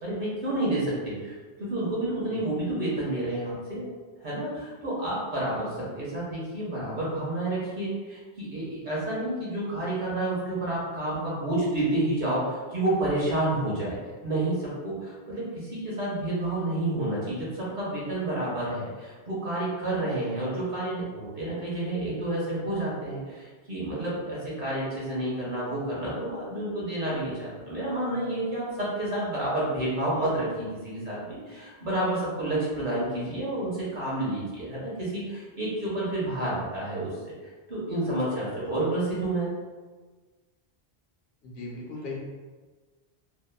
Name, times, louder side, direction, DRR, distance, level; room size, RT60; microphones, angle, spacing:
voice 1, 0.0-3.9 4.2-14.0 14.2-37.3 37.7-39.5, right 1 dB, 50° right, -7 dB, 0.9 m, -30 dB
voice 2, 5.6-5.9 38.7-38.8 41.4-42.2, left 2 dB, 70° left, -2 dB, 0.7 m, -39 dB
2.8 x 2.2 x 2.2 m, 1.4 s
omnidirectional pair, 1.1 m